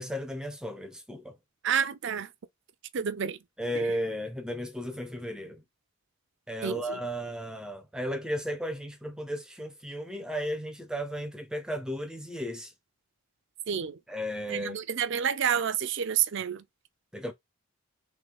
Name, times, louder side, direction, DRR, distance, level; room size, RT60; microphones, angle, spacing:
voice 1, 0.0-1.4 3.6-5.6 6.5-12.7 14.1-14.8 17.1-17.3, equal, 5° right, 0.5 m, -34 dB
voice 2, 1.6-2.3 2.9-3.4 3.8-3.9 6.6-7.0 13.7-14.0 14.5-16.6, right 8 dB, 55° right, 0.4 m, -29 dB
3.7 x 3.1 x 3.5 m
head